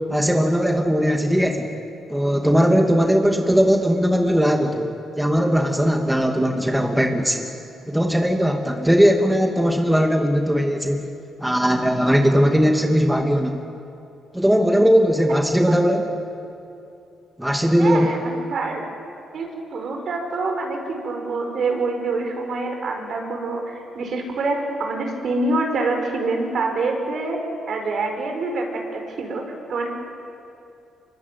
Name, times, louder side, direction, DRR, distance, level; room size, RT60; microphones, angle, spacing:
voice 1, 0.1-1.8 2.1-7.5 7.9-11.0 11.4-13.6 14.3-16.1 17.4-18.1, equal, 5° right, 3 dB, 2.3 m, -19 dB
voice 2, 17.8-18.8 19.3-30.0, right 3 dB, 60° right, 3 dB, 5.4 m, -26 dB
25.0 x 23.5 x 9.5 m, 2.7 s
cardioid pair, 90°, 0 cm